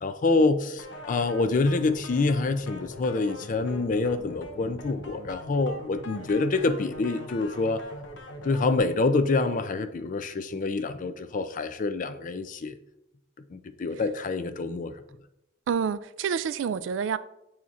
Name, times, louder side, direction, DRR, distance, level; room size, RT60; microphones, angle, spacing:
voice 1, 0.0-7.8 8.4-12.8 13.5-15.0, left 3 dB, 45° left, 0.4 m, -26 dB
sound 1, 0.8-8.8, left 1 dB, 80° left, 0.7 m, -42 dB
voice 2, 15.7-17.2, right 7 dB, 80° right, 0.3 m, -28 dB
9.2 x 4.2 x 2.4 m
head